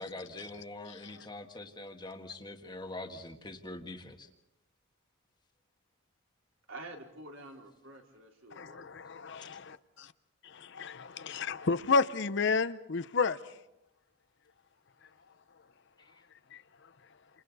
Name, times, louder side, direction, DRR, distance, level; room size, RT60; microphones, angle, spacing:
voice 1, 0.0-4.3 16.0-16.1, left 2 dB, 20° left, 1.6 m, -44 dB
voice 2, 0.9-1.3 8.5-9.6 10.4-13.5 16.5-16.6, left 4 dB, 55° left, 0.7 m, -31 dB
voice 3, 6.7-8.8, right 2 dB, 65° right, 4.1 m, -48 dB
30.0 x 28.0 x 4.1 m
head